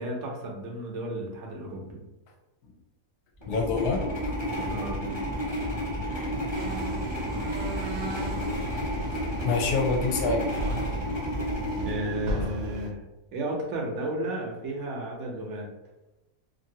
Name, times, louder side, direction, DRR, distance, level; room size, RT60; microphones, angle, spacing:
voice 1, 0.0-2.0 4.5-5.2 11.8-13.0 13.3-15.7, right 1 dB, 60° right, 0 dB, 0.8 m, -33 dB
sound 1, 3.4-12.8, equal, 20° left, 0.9 m, -31 dB
voice 2, 3.5-4.8 9.4-10.5, left 4 dB, 70° left, 1 dB, 1.0 m, -27 dB
sound 2, 6.5-12.9, right 1 dB, 90° right, 1.2 m, -36 dB
2.7 x 2.6 x 2.7 m, 0.94 s
omnidirectional pair, 1.7 m